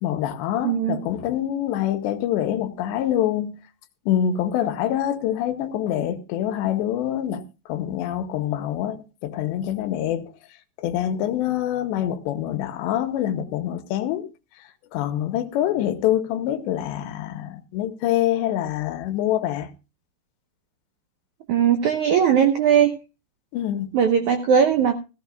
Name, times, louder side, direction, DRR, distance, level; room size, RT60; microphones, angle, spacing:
voice 1, 0.0-3.6 4.1-7.4 7.7-10.3 10.8-14.3 14.9-19.7 23.5-24.0, left 11 dB, 90° left, 3.1 m, -25 dB
voice 2, 0.6-1.0 21.5-22.9 23.9-24.9, right 8 dB, 85° right, 1.7 m, -19 dB
16.0 x 15.0 x 2.3 m
omnidirectional pair, 5.0 m